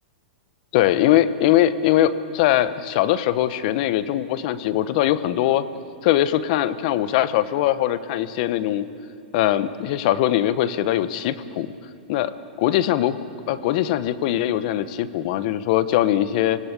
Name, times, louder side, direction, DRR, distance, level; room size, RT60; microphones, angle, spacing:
voice 1, 0.7-5.6 6.0-8.8 9.3-11.7 12.1-12.3 12.6-13.2 13.5-16.6, left 12 dB, 50° left, 14 dB, 1.1 m, -21 dB
25.5 x 18.0 x 8.4 m, 2.5 s
hypercardioid pair, 135°, 5 cm